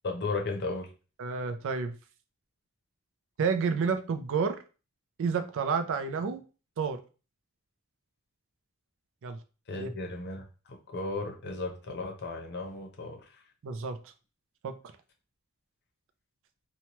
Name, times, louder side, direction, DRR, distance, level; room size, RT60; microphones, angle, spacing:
voice 1, 0.0-0.9 9.7-13.2, left 3 dB, 50° left, 2 dB, 0.7 m, -35 dB
voice 2, 1.2-1.9 3.4-4.6 5.2-6.4 6.8-7.0 9.2-9.4 9.8-9.9 13.6-14.0 14.6-14.7, right 5 dB, 60° right, 8 dB, 0.4 m, -29 dB
2.9 x 2.2 x 2.9 m, 0.34 s
head